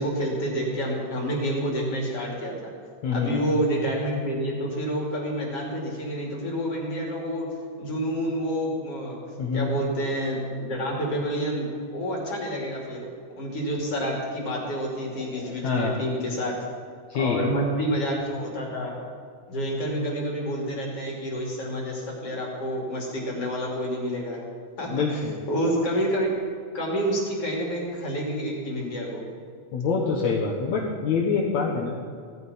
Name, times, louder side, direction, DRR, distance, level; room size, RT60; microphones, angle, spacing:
voice 1, 0.0-2.7 3.1-7.5 7.8-9.2 9.5-13.1 13.4-16.6 17.2-19.0 19.5-24.4 24.8-26.3 26.7-29.2, equal, 45° left, -2 dB, 3.5 m, -28 dB
voice 2, 3.0-3.5 9.4-9.7 15.1-16.0 17.1-17.4 24.9-25.4 29.7-32.0, left 5 dB, 65° left, -2 dB, 2.4 m, -26 dB
17.0 x 15.5 x 4.3 m, 2.2 s
omnidirectional pair, 3.9 m